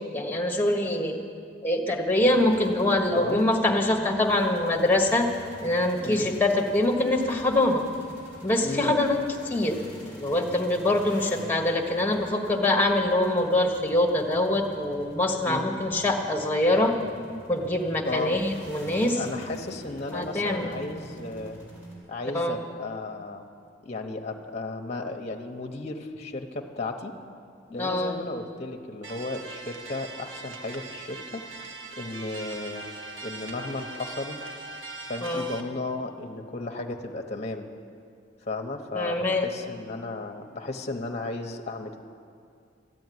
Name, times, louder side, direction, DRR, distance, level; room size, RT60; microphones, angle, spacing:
voice 1, 0.1-1.2 1.6-5.3 5.6-7.8 8.4-9.2 9.4-9.8 10.2-17.0 17.5-19.2 20.1-20.7 22.3-22.6 27.8-28.2 35.2-35.5 38.9-39.5, left 1 dB, 10° left, 1 dB, 1.4 m, -24 dB
sound 1, 2.2-22.0, equal, 10° right, 4.8 m, -47 dB
voice 2, 6.0-6.3 8.6-8.9 15.5-15.7 18.0-18.4 19.1-21.6 22.1-23.5 23.8-27.1 27.7-31.5 32.0-32.8 33.2-34.4 35.1-37.7 38.4-42.0, left 2 dB, 35° left, 3 dB, 0.9 m, -34 dB
sound 2, 29.0-35.6, right 3 dB, 80° right, 1.3 m, -40 dB
14.0 x 8.6 x 9.4 m, 2.3 s
head